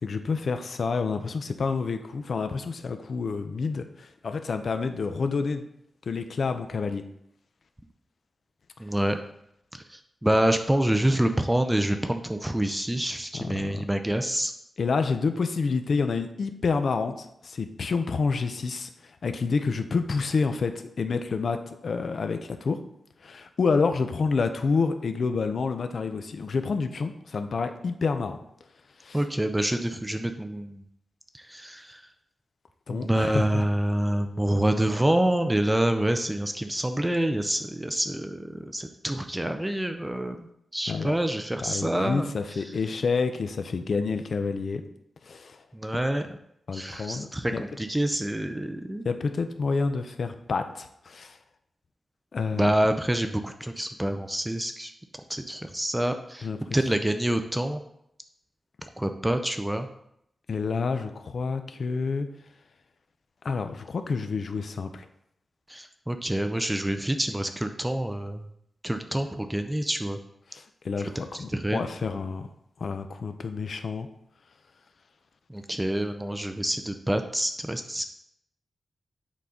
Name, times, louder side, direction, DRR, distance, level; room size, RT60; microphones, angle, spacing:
voice 1, 0.0-5.6 6.0-7.0 13.3-13.9 14.8-22.8 23.2-28.4 29.0-29.2 32.9-33.6 40.9-41.1 41.6-44.8 45.2-45.6 46.7-47.6 49.0-51.4 52.3-52.7 56.4-56.8 60.5-62.3 63.4-65.1 70.5-72.5 72.8-74.1, left 4 dB, 60° left, 8 dB, 0.6 m, -28 dB
voice 2, 8.8-9.2 9.7-14.5 29.1-30.8 31.3-32.0 32.9-40.5 40.7-42.3 45.7-46.4 46.7-49.0 52.5-54.9 55.3-57.8 58.8-59.9 65.7-68.5 68.8-70.2 71.3-71.8 75.5-78.1, right 1 dB, 10° right, 7 dB, 0.5 m, -27 dB
8.3 x 3.9 x 3.8 m, 0.75 s
wide cardioid pair, 95°, 0 cm